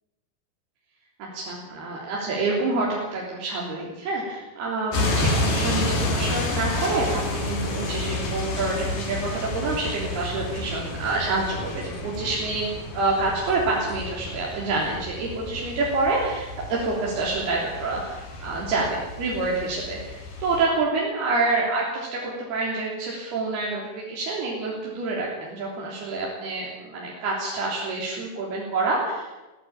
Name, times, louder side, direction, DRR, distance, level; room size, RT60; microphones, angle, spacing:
voice 1, 1.2-12.7 12.9-29.3, right 3 dB, 85° right, -4 dB, 5.6 m, -27 dB
sound 1, 4.9-20.6, left 2 dB, 75° left, 5.6 m, -30 dB
22.0 x 16.5 x 8.9 m, 1.1 s
omnidirectional pair, 4.4 m